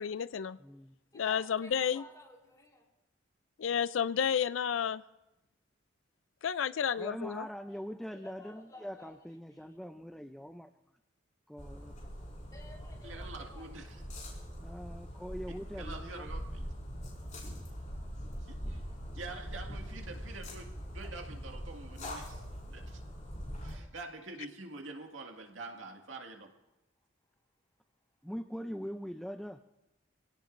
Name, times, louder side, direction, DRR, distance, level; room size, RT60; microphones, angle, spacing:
voice 1, 0.0-0.6 1.2-2.0 3.6-5.0 6.4-7.4, left 8 dB, 90° left, 16 dB, 0.4 m, -31 dB
voice 2, 0.6-1.0 7.0-10.7 11.5-12.0 14.6-16.3 28.2-29.6, equal, ahead, 7 dB, 0.5 m, -42 dB
voice 3, 1.2-2.9 6.5-7.1 7.7-7.8 8.1-9.1 9.5-9.7 12.5-13.8, left 2 dB, 20° left, -2 dB, 3.9 m, -54 dB
sound 1, 11.6-23.7, equal, 40° left, 5.5 m, -42 dB
voice 4, 13.0-14.0 15.5-16.7 18.4-18.8 19.2-23.0 23.6-26.5, right 3 dB, 80° right, 2 dB, 2.1 m, -46 dB
26.0 x 17.5 x 2.6 m, 0.96 s
head